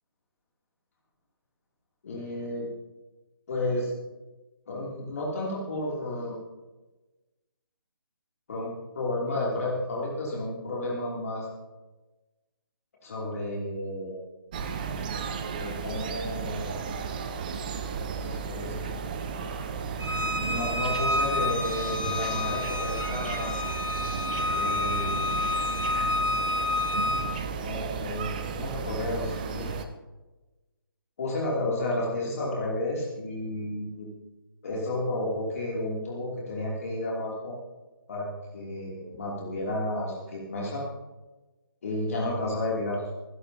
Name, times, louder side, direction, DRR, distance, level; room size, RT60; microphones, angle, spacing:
voice 1, 2.0-2.7 3.5-3.9 4.6-6.4 8.5-11.5 13.0-14.2 15.5-16.7 18.2-19.0 20.4-23.5 24.5-25.4 27.6-29.8 31.2-34.1 34.6-37.5 38.1-38.3 38.5-40.8 41.8-43.0, left 1 dB, 40° left, -4 dB, 3.0 m, -32 dB
sound 1, 14.5-29.8, right 5 dB, 20° right, 0.7 m, -34 dB
Bowed string instrument, 20.0-27.2, left 2 dB, 80° right, 4.2 m, -29 dB
25.5 x 11.5 x 2.9 m, 1.2 s
figure-of-eight pair, 145°, 12 cm